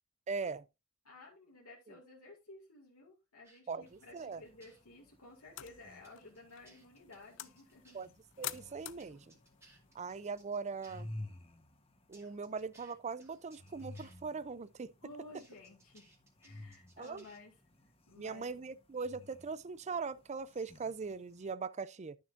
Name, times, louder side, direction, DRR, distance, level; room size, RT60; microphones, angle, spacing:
voice 1, 0.3-0.6 3.7-4.4 7.9-8.1 8.4-9.3 9.9-11.1 12.1-14.9 17.0-17.2 18.2-22.2, right 4 dB, 30° right, 0.5 m, -40 dB
voice 2, 1.0-8.0 15.0-16.1 16.4-17.5 17.8-18.6, left 2 dB, 75° left, 2.3 m, -54 dB
sound 1, 3.4-4.8 6.0-8.1 9.0-11.0 12.1-14.2 15.3-17.4, right 2 dB, 15° right, 2.2 m, -64 dB
sound 2, 3.8-21.5, left 1 dB, 25° left, 1.2 m, -54 dB
sound 3, 5.4-11.0, left 14 dB, 60° left, 0.5 m, -50 dB
11.5 x 6.6 x 2.6 m
head